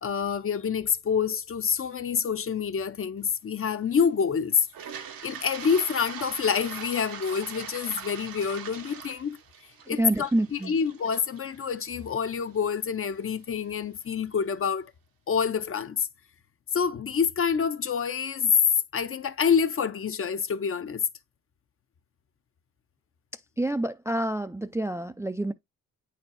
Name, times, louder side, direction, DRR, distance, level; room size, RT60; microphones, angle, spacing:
voice 1, 0.0-4.7 5.2-9.4 9.9-14.9 15.3-16.1 16.7-18.6 18.9-21.1, left 6 dB, 40° left, 0.6 m, -27 dB
Toilet flush, 4.6-12.6, right 8 dB, 80° right, 1.1 m, -42 dB
voice 2, 9.9-10.7 23.6-25.5, right 1 dB, 10° right, 0.3 m, -28 dB
8.7 x 4.3 x 2.5 m
cardioid pair, 85°, 34 cm